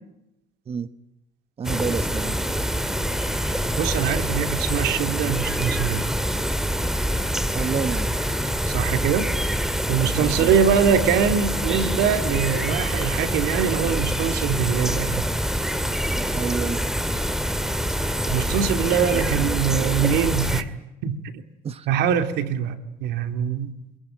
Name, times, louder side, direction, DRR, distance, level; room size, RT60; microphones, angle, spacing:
sound 1, 1.6-20.6, equal, 5° right, 1.9 m, -25 dB
voice 1, 1.6-2.4 7.5-8.1 10.2-10.5 16.3-16.8 19.1-19.2 21.6-21.9, right 6 dB, 35° right, 12 dB, 1.2 m, -29 dB
voice 2, 3.8-6.0 8.7-9.3 9.9-15.3 18.3-20.7 21.0-21.2 21.9-23.7, right 8 dB, 85° right, 8 dB, 2.8 m, -23 dB
27.0 x 22.0 x 9.2 m, 0.88 s
cardioid pair, 110°, 17 cm